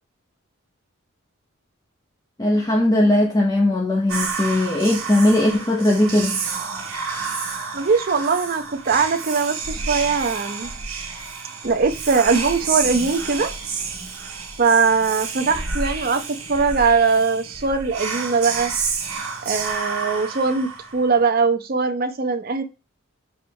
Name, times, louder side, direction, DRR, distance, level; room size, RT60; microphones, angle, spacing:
voice 1, 2.4-6.4, left 1 dB, 15° left, 0.6 m, -19 dB
Whispering, 4.1-21.2, right 5 dB, 85° right, 1.4 m, -30 dB
voice 2, 7.7-10.7 11.6-13.5 14.6-16.2 16.5-18.7 19.4-22.6, right 4 dB, 45° right, 0.6 m, -21 dB
4.5 x 3.3 x 2.7 m
head